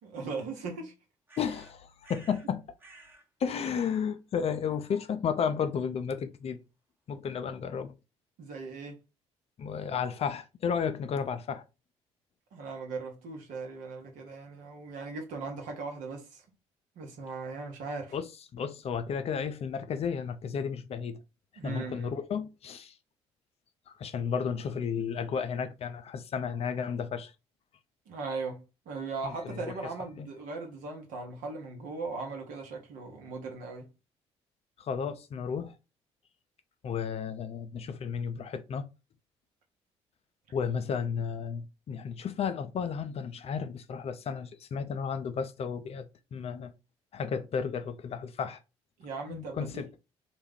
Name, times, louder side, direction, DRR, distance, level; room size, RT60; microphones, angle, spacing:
voice 1, 0.0-0.9 8.4-9.0 12.5-16.4 17.0-18.2 21.6-22.1 28.1-33.9 49.0-49.8, right 4 dB, 65° right, 0.9 m, -38 dB
sound 1, 1.3-2.5 2.8-3.3 3.6-4.1, right 3 dB, 15° right, 0.8 m, -54 dB
voice 2, 1.4-2.6 3.4-6.6 7.1-7.9 9.6-11.6 18.1-21.2 21.6-22.9 23.9-27.3 29.2-29.7 30.2-30.3 34.8-35.7 36.8-38.9 40.5-46.7 47.1-48.6 49.3-50.0, left 6 dB, 45° left, 0.4 m, -33 dB
2.3 x 2.1 x 3.4 m
hypercardioid pair, 50°, 14 cm